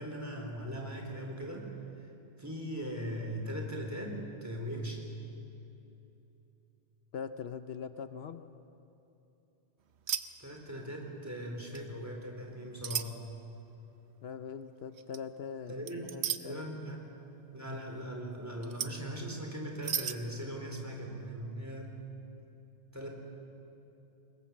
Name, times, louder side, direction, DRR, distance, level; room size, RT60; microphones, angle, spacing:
voice 1, 0.0-1.7 2.4-5.1 10.4-13.2 15.7-16.1 16.4-17.0 17.5-21.9 22.9-23.1, equal, 15° right, 1 dB, 4.0 m, -39 dB
voice 2, 7.1-8.5 14.2-15.8 16.1-16.7, left 6 dB, 75° left, 10 dB, 1.0 m, -42 dB
sound 1, 10.1-10.2 10.5-10.9 11.7-11.9 12.8-13.1 15.0-15.2 15.9-16.4 18.6-19.0 19.8-20.2, right 8 dB, 85° right, 1.1 m, -34 dB
26.0 x 21.5 x 7.5 m, 2.9 s
omnidirectional pair, 1.1 m